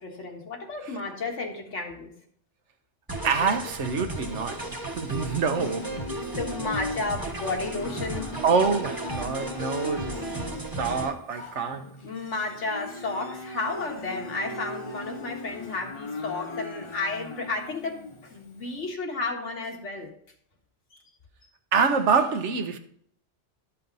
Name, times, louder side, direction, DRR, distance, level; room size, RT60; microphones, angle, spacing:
voice 1, 0.0-2.1 5.6-5.9 6.4-8.3 12.0-20.1 20.9-21.0, left 3 dB, 80° left, 1.8 m, -32 dB
sound 1, 3.1-11.1, right 2 dB, 20° right, 1.0 m, -35 dB
voice 2, 3.2-4.7 5.0-6.0 8.4-10.3 10.8-11.9 21.7-22.8, right 5 dB, 75° right, 1.2 m, -26 dB
Livestock farm animals working animals, 4.2-18.9, left 2 dB, 30° left, 0.6 m, -39 dB
12.0 x 5.7 x 4.0 m
omnidirectional pair, 1.2 m